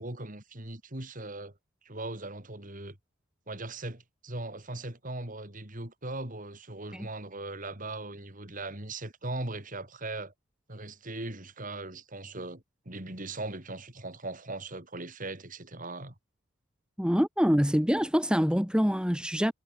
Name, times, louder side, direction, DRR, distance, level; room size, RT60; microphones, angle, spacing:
voice 1, 0.0-1.5 1.8-3.0 3.5-10.3 10.7-16.1, right 2 dB, 40° right, 3.7 m, -39 dB
voice 2, 17.0-19.5, equal, 5° right, 2.1 m, -25 dB
head